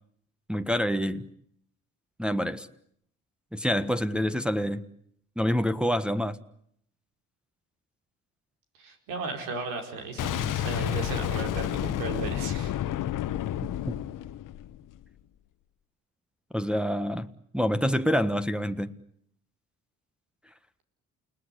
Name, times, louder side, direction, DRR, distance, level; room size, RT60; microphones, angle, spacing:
voice 1, 0.5-1.3 2.2-2.7 3.5-4.9 5.4-6.4 16.5-18.9, equal, 5° right, 1.3 m, -27 dB
voice 2, 8.8-12.8, right 3 dB, 80° right, 4.9 m, -35 dB
Boom, 10.2-15.0, left 12 dB, 65° left, 1.1 m, -30 dB
29.5 x 18.5 x 9.9 m
supercardioid pair, 60°, 34 cm